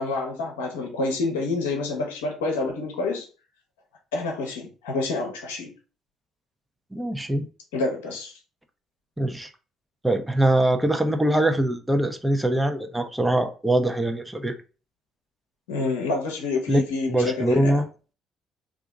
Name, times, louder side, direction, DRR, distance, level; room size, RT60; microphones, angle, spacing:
voice 1, 0.0-3.2 4.1-5.7 7.7-8.3 15.7-17.8, left 3 dB, 85° left, 0.7 m, -28 dB
voice 2, 6.9-7.4 9.2-9.5 10.0-14.5 16.7-16.8 17.1-17.9, right 1 dB, 10° right, 0.6 m, -22 dB
2.8 x 2.5 x 3.6 m
hypercardioid pair, 55°, 0 cm